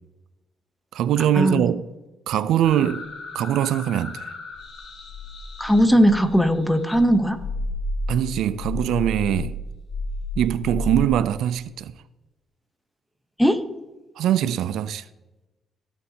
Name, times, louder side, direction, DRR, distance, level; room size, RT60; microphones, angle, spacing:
voice 1, 0.9-1.9 2.3-3.1 3.3-4.3 8.1-9.6 10.4-11.9 14.2-15.1, right 11 dB, 80° right, 0.4 m, -22 dB
sound 1, 2.6-6.5 6.9-11.1, left 2 dB, 60° left, 1.7 m, -32 dB
voice 2, 5.6-7.4 13.4-13.6, equal, 5° left, 0.9 m, -18 dB
16.0 x 7.0 x 2.8 m
cardioid pair, 90°, 0 cm